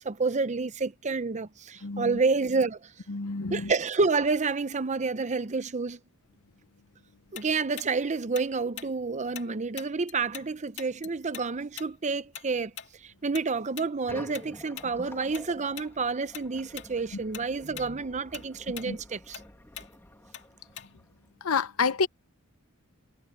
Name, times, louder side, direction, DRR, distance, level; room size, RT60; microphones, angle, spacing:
voice 1, 0.0-2.9 3.5-6.0 7.3-12.7 13.0-19.4, right 4 dB, 35° right, 0.7 m, -29 dB
voice 2, 1.8-2.2 3.1-3.7 18.8-19.0 21.4-22.1, left 5 dB, 85° left, 0.8 m, -28 dB
Tick-tock, 7.3-10.5 10.8-15.5 15.8-16.0 16.3-16.9 17.2-21.2, left 10 dB, 55° left, 2.4 m, -43 dB
sound 1, 14.1-21.3, left 1 dB, 10° left, 2.2 m, -49 dB
head